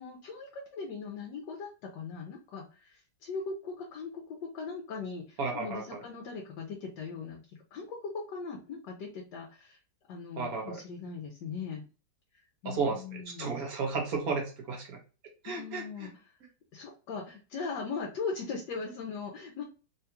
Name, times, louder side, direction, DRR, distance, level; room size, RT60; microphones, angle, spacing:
voice 1, 0.0-7.4 7.7-9.8 10.1-11.8 12.3-13.5 15.4-16.1 16.7-19.6, left 4 dB, 75° left, 0 dB, 1.3 m, -39 dB
voice 2, 5.4-6.0 10.4-10.8 12.6-15.0 15.4-16.1, right 4 dB, 60° right, 1 dB, 1.1 m, -33 dB
3.7 x 2.3 x 2.8 m, 0.35 s
omnidirectional pair, 2.0 m